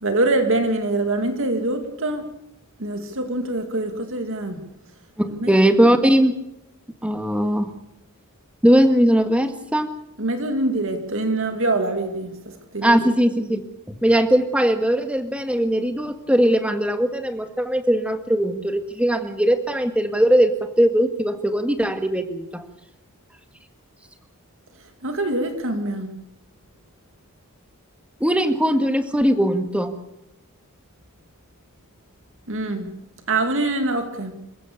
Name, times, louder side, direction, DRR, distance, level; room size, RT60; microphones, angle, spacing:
voice 1, 0.0-2.3 2.8-4.6 5.3-5.5 10.2-13.2 24.8-26.2 32.5-32.9 33.3-34.4, right 2 dB, 60° right, 6 dB, 2.3 m, -24 dB
voice 2, 5.2-6.3 7.0-7.7 8.6-9.9 12.8-13.6 14.0-22.6 28.2-29.9, equal, 5° right, 7 dB, 1.7 m, -19 dB
27.5 x 15.5 x 6.7 m, 0.86 s
head